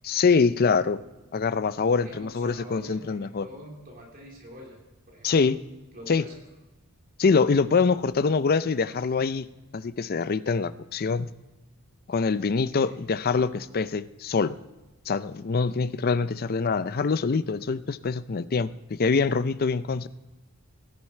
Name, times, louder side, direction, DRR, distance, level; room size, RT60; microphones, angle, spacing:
voice 1, 0.0-1.0 1.3-3.5 5.2-5.6 6.1-6.2 7.2-9.5 9.7-11.3 12.1-14.5 15.1-18.7 19.0-20.1, left 4 dB, 45° left, 14 dB, 0.5 m, -24 dB
voice 2, 2.0-5.5 5.9-6.3 12.7-13.0, equal, 40° right, -2 dB, 3.5 m, -46 dB
17.0 x 10.5 x 4.4 m, 1.1 s
head